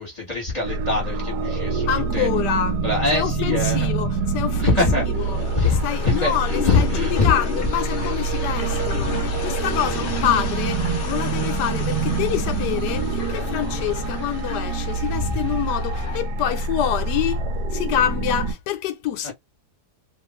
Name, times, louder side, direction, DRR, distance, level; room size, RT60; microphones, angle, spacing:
voice 1, 0.0-1.9 2.1-2.3 2.8-3.9 4.6-7.3 15.3-15.4, left 3 dB, 25° left, 1.3 m, -23 dB
sound 1, 0.6-18.5, right 3 dB, 85° right, 1.2 m, -26 dB
voice 2, 1.9-2.8 3.1-4.8 5.1-17.4 17.7-19.3, left 10 dB, 85° left, 1.2 m, -26 dB
sound 2, 3.3-16.2, left 4 dB, 60° left, 0.6 m, -32 dB
2.9 x 2.4 x 3.0 m
omnidirectional pair, 1.8 m